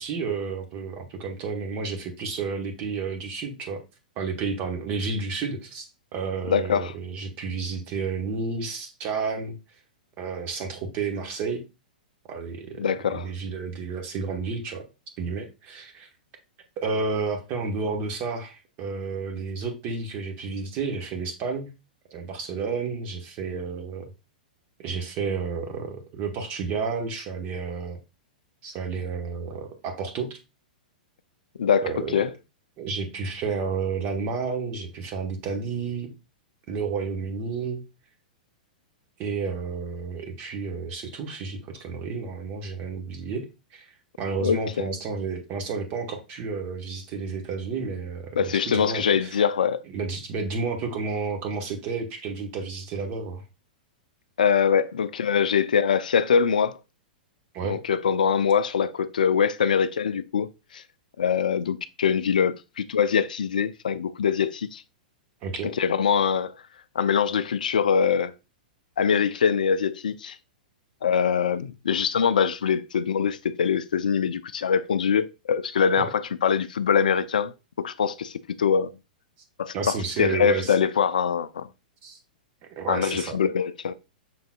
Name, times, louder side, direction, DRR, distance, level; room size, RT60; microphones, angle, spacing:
voice 1, 0.0-3.8 4.2-9.6 10.2-11.6 12.3-14.9 15.2-16.1 16.8-21.7 22.1-24.1 24.8-28.0 28.6-30.4 31.8-32.2 32.8-36.1 36.7-37.8 39.2-43.5 43.7-49.4 49.9-53.4 57.5-57.8 65.4-65.7 76.0-76.1 79.7-80.8 82.0-82.2 82.8-83.4, right 4 dB, 40° right, 1.2 m, -31 dB
voice 2, 6.5-6.9 12.8-13.3 31.6-32.3 44.4-44.6 48.4-49.8 54.4-56.8 57.6-60.8 61.2-64.8 65.6-66.5 67.0-68.3 69.0-70.4 71.0-77.5 77.8-78.9 79.6-81.7 82.9-83.9, left 7 dB, 70° left, 0.4 m, -23 dB
6.0 x 3.7 x 2.3 m
figure-of-eight pair, 105°, 5 cm